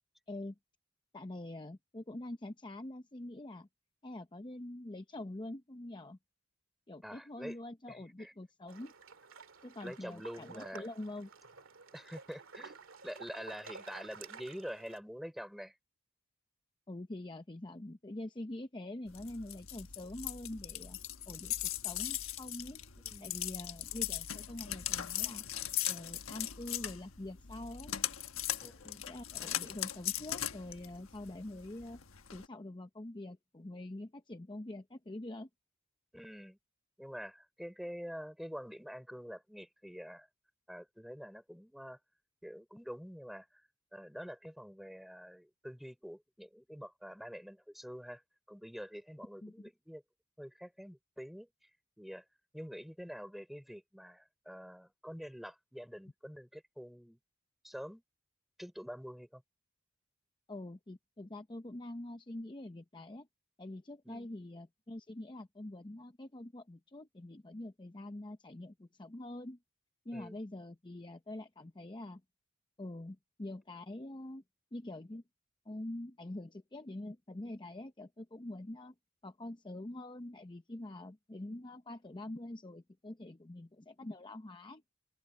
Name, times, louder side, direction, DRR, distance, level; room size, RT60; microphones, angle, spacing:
voice 1, 1.1-3.7 4.0-6.2 6.9-8.9 9.6-11.3 16.9-21.0 21.3-22.8 23.2-25.4 25.9-27.9 29.1-32.0 32.3-35.5 49.4-49.7 60.5-63.3 63.6-69.6 70.0-72.2 72.8-74.4 74.7-75.2 75.7-78.9 79.2-84.8, left 1 dB, 25° left, 0.7 m, -45 dB
voice 2, 7.0-7.6 7.9-8.3 9.8-10.9 11.9-15.8 23.1-23.4 28.6-29.1 36.1-36.6 37.0-40.3 40.7-42.0 42.4-43.5 43.9-48.2 48.5-50.0 50.4-51.5 52.0-52.2 52.5-57.2 57.6-58.0 58.6-59.4 64.0-64.3 70.1-70.4, equal, ahead, 4.4 m, -46 dB
sound 1, 8.7-15.0, right 5 dB, 90° right, 2.1 m, -52 dB
arrive at home, 19.1-32.5, left 12 dB, 85° left, 1.3 m, -39 dB
open air
head